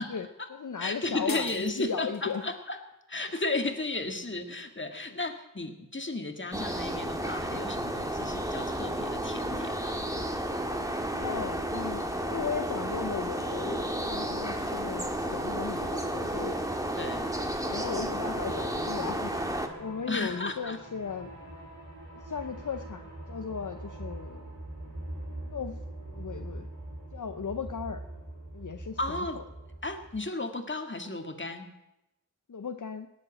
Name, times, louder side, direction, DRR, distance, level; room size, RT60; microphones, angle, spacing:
voice 1, 0.1-2.4 7.4-7.7 11.1-16.6 17.6-19.4 19.8-21.3 22.1-24.5 25.5-25.8 26.1-26.7 27.1-28.0 28.5-29.4 32.5-33.1, left 6 dB, 65° left, 8 dB, 0.7 m, -36 dB
voice 2, 0.8-2.8 3.1-10.1 17.0-17.3 20.1-20.8 29.0-29.4 29.8-31.7, left 2 dB, 35° left, 5 dB, 1.8 m, -34 dB
sound 1, 1.3-2.5, left 3 dB, 85° left, 1.8 m, -42 dB
Birds and wind, 6.5-19.7, right 1 dB, 10° right, 1.8 m, -32 dB
sound 2, 18.0-30.2, right 1 dB, 60° right, 6.1 m, -43 dB
18.5 x 7.5 x 8.8 m, 0.91 s
wide cardioid pair, 50°, 32 cm